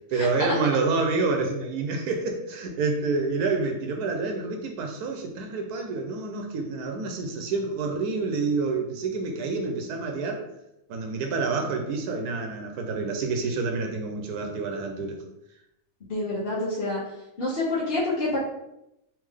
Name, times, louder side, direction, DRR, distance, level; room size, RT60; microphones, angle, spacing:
voice 1, 0.1-10.4 10.9-15.2, right 4 dB, 85° right, 2 dB, 1.1 m, -28 dB
voice 2, 16.1-17.0 17.4-18.4, left 2 dB, 45° left, -9 dB, 1.2 m, -27 dB
3.3 x 3.2 x 3.5 m, 0.86 s
omnidirectional pair, 1.6 m